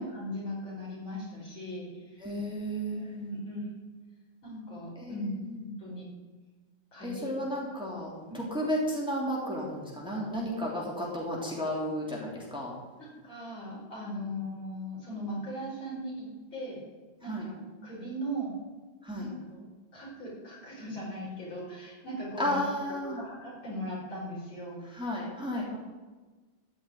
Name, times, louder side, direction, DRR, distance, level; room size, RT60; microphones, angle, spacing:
voice 1, 0.0-2.2 2.9-3.7 4.4-5.3 5.6-6.1 6.9-7.1 13.0-16.8 17.2-18.5 19.1-19.6 19.9-22.6 23.1-24.8, equal, 80° left, -5 dB, 5.9 m, -39 dB
voice 2, 2.2-3.3 5.0-5.5 7.0-12.7 17.2-17.5 19.0-19.3 22.4-23.2 24.9-25.8, equal, ahead, -4 dB, 3.1 m, -33 dB
13.5 x 6.2 x 9.4 m, 1.3 s
omnidirectional pair, 2.1 m